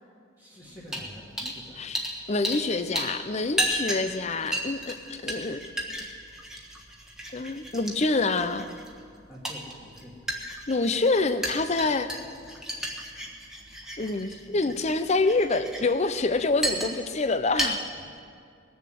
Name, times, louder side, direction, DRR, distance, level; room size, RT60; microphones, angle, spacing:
voice 1, 0.4-1.8 9.3-10.2 17.9-18.2, left 1 dB, 15° left, -8 dB, 2.0 m, -46 dB
sound 1, 0.9-1.1 1.4-1.6 1.9-2.7 2.9-17.2 17.5-17.7, equal, 5° right, 1.3 m, -34 dB
voice 2, 1.4-2.0 2.3-5.7 7.3-8.7 10.7-12.1 14.0-17.8, left 3 dB, 35° left, 11 dB, 0.6 m, -26 dB
20.0 x 7.1 x 7.6 m, 2.3 s
head